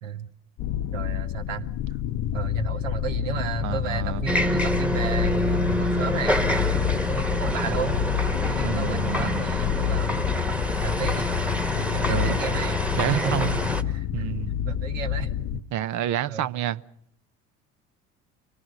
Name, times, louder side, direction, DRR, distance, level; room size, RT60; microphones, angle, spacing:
sound 1, 0.6-15.6, left 10 dB, 50° left, 0.8 m, -28 dB
voice 1, 0.9-1.7 2.3-6.5 6.9-13.5 13.9-14.3 14.6-15.6 16.3-16.5, right 7 dB, 80° right, 1.5 m, -34 dB
voice 2, 3.6-4.3 8.6-9.4 12.1-12.4 13.0-13.6 14.1-14.5 15.7-16.8, right 11 dB, 50° right, 0.8 m, -29 dB
sound 2, 4.3-13.8, equal, 5° right, 1.4 m, -27 dB
25.0 x 18.5 x 6.5 m
hypercardioid pair, 70°, 38 cm